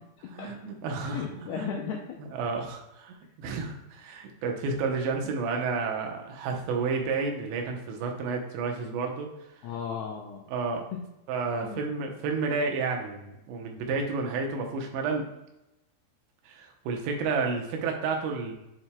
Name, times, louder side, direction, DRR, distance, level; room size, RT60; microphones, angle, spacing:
voice 1, 0.3-1.2 1.5-1.7 2.3-9.3 10.5-10.8 11.3-15.2 16.5-18.5, right 4 dB, 80° right, 2 dB, 3.0 m, -31 dB
voice 2, 1.0-2.2 9.6-10.5 10.9-11.0 11.6-11.9, left 7 dB, 85° left, 0 dB, 2.3 m, -36 dB
9.7 x 4.3 x 2.2 m, 0.90 s
omnidirectional pair, 5.2 m